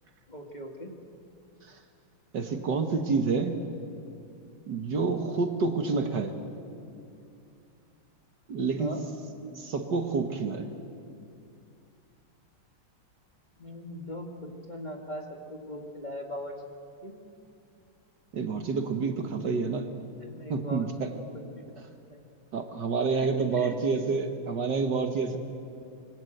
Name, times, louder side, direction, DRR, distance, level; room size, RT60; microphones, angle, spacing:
voice 1, 0.3-0.9 5.6-5.9 8.8-9.0 13.6-16.5 17.0-17.2 20.2-20.9 21.2-21.8 22.1-22.2 23.1-23.8 24.1-24.2, left 1 dB, 20° left, 2 dB, 2.0 m, -40 dB
voice 2, 2.3-3.7 4.7-6.3 8.5-9.0 9.6-10.7 18.3-19.9 20.5-21.1 22.5-25.4, right 4 dB, 55° right, 6 dB, 1.9 m, -28 dB
26.5 x 23.0 x 8.0 m, 2.5 s
omnidirectional pair, 2.3 m